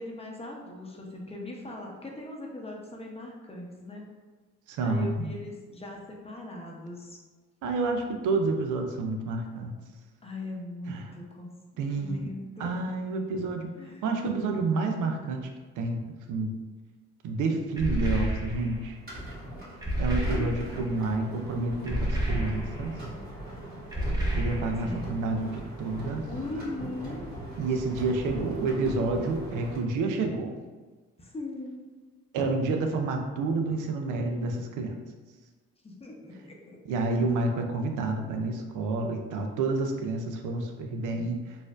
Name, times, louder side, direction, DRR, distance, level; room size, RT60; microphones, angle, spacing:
voice 1, 0.0-4.0 4.8-7.2 10.2-11.5 11.7-12.7 13.8-14.0 20.2-20.8 24.8-25.1 26.3-27.3 31.2-31.9 35.8-36.8, left 2 dB, 20° left, -1 dB, 0.7 m, -40 dB
voice 2, 4.7-5.3 7.6-9.7 10.9-11.1 11.8-12.3 12.6-13.7 14.0-15.5 15.8-16.0 16.3-16.5 17.2-19.0 20.0-22.9 24.4-26.2 27.6-30.6 32.3-34.9 36.9-41.6, right 3 dB, 80° right, 4 dB, 0.5 m, -29 dB
sound 1, 17.8-18.8 19.8-20.9 21.9-22.9 23.9-25.0, right 1 dB, 15° right, 0.8 m, -30 dB
sound 2, 18.5-29.8, equal, 30° right, 1.5 m, -40 dB
4.1 x 2.5 x 2.4 m, 1.3 s
cardioid pair, 90°, 30 cm